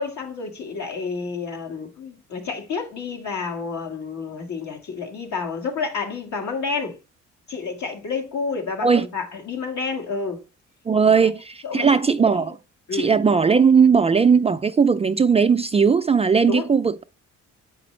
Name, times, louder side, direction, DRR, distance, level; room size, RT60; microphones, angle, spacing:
voice 1, 0.0-7.0 7.5-10.4 11.2-11.3 11.6-12.5 12.9-13.1 16.4-16.7, left 4 dB, 70° left, 1.8 m, -30 dB
voice 2, 10.9-12.5 12.9-17.0, right 6 dB, 20° right, 0.3 m, -18 dB
7.6 x 5.0 x 3.2 m
cardioid pair, 90°, 30 cm